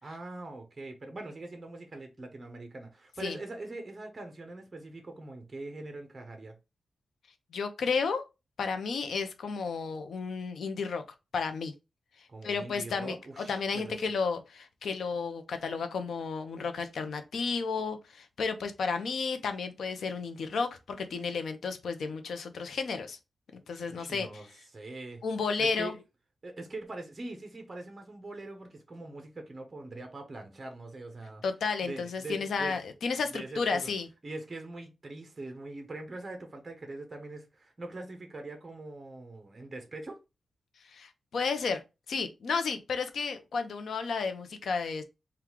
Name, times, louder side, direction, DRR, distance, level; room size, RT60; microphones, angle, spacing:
voice 1, 0.0-6.6 12.3-14.0 23.9-25.2 25.6-25.9 26.4-31.4 31.8-32.7 33.3-33.9 34.2-40.2, right 2 dB, 25° right, 0.8 m, -42 dB
voice 2, 7.5-8.2 8.6-11.0 11.3-11.7 12.4-23.2 23.5-24.3 25.2-25.9 31.4-34.1 40.9-41.8 42.1-45.0, left 5 dB, 75° left, 0.6 m, -32 dB
3.7 x 2.3 x 4.4 m
wide cardioid pair, 155°, 0 cm